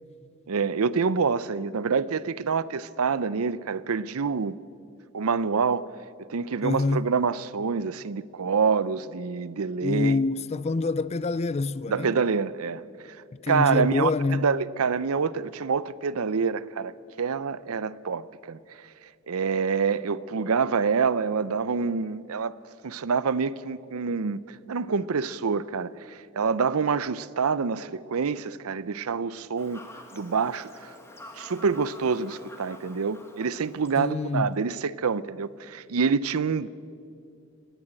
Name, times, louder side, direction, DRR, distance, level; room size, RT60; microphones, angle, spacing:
voice 1, 0.5-4.6 5.1-5.9 6.3-10.2 11.9-12.8 13.5-16.9 17.2-18.6 19.3-22.5 22.8-24.4 24.7-29.8 30.1-30.7 31.4-36.7, right 5 dB, 80° right, 0.6 m, -26 dB
voice 2, 6.6-7.1 9.8-12.2 13.3-14.5 34.0-34.6, left 3 dB, 30° left, 0.4 m, -26 dB
Fowl / Bird vocalization bird call bird song, 29.6-34.6, left 1 dB, 10° left, 1.7 m, -48 dB
19.5 x 15.0 x 8.9 m
head